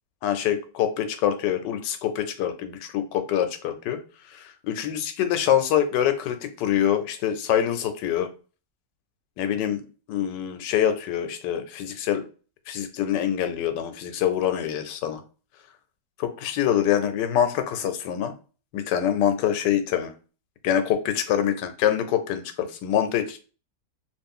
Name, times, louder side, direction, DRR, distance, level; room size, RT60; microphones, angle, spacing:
voice 1, 0.2-4.0 4.3-8.3 9.4-9.8 10.1-12.2 12.7-15.2 16.2-18.3 18.7-20.1 20.6-23.4, left 10 dB, 85° left, 8 dB, 1.2 m, -25 dB
2.9 x 2.5 x 3.6 m, 0.37 s
omnidirectional pair, 1.9 m